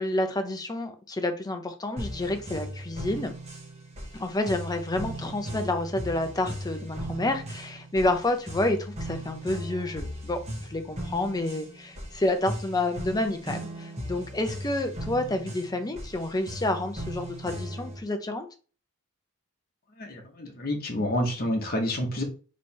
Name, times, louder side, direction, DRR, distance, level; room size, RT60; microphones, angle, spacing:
voice 1, 0.0-3.3 4.1-18.5, left 2 dB, 20° left, 6 dB, 0.6 m, -29 dB
sound 1, 2.0-18.0, right 1 dB, 30° right, 1.3 m, -37 dB
voice 2, 20.0-22.2, left 1 dB, 45° left, 0 dB, 1.1 m, -28 dB
3.4 x 3.1 x 4.3 m, 0.36 s
head